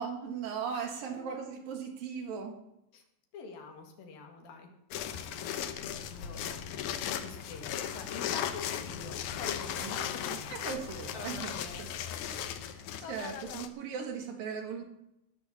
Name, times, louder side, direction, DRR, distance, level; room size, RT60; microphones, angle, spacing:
voice 1, 0.0-2.6 9.8-10.0 10.5-11.5 12.7-14.8, right 6 dB, 80° right, 3 dB, 3.6 m, -38 dB
voice 2, 0.7-1.5 2.9-3.0 3.3-4.7 5.3-6.8 7.2-10.6 11.1-12.3, left 5 dB, 85° left, 4 dB, 3.9 m, -46 dB
sound 1, 4.9-13.7, left 9 dB, 70° left, 2.1 m, -37 dB
19.0 x 6.5 x 7.1 m, 0.84 s
omnidirectional pair, 4.0 m